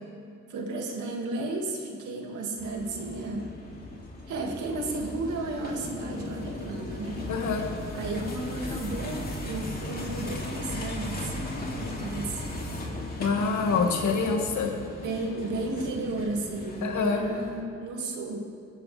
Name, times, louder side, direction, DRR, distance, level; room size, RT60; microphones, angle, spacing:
voice 1, 0.5-3.5 4.3-7.2 7.9-12.4 15.0-18.4, right 2 dB, 80° right, 0 dB, 2.5 m, -33 dB
sound 1, 2.6-17.6, left 1 dB, 30° left, 3.1 m, -37 dB
voice 2, 7.3-7.6 13.2-14.7 16.8-17.2, left 4 dB, 70° left, 1 dB, 2.3 m, -26 dB
20.5 x 16.0 x 3.6 m, 2.4 s
cardioid pair, 90°, 30 cm